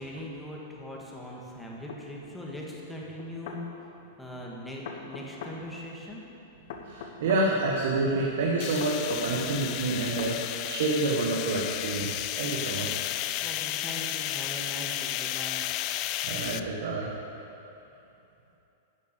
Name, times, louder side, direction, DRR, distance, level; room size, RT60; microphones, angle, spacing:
voice 1, 0.0-3.7 4.2-6.2 13.4-15.7, equal, 5° left, -3 dB, 1.7 m, -40 dB
sound 1, 1.9-2.0 3.2-3.6 4.8-5.6 6.7-7.5 8.8-9.3 10.2-10.4, left 6 dB, 60° left, 1.2 m, -40 dB
voice 2, 6.8-13.0 16.2-17.1, right 2 dB, 70° right, -2 dB, 1.4 m, -28 dB
sound 2, 8.6-16.6, left 13 dB, 40° left, 0.3 m, -33 dB
11.0 x 7.5 x 6.7 m, 3.0 s
supercardioid pair, 150°, 0 cm